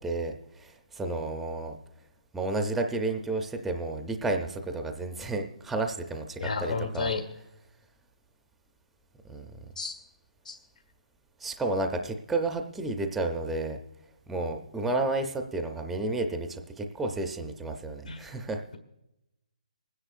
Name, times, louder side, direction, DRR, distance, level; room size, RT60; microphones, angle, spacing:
voice 1, 0.0-1.8 2.3-7.1 9.2-9.5 11.4-13.8 14.3-18.6, right 2 dB, 5° right, 4 dB, 0.4 m, -31 dB
voice 2, 6.4-7.2 9.8-9.9 10.4-10.5 18.0-18.2, left 4 dB, 80° left, 5 dB, 1.6 m, -31 dB
26.0 x 9.9 x 2.4 m, 0.89 s
hypercardioid pair, 175°, 4 cm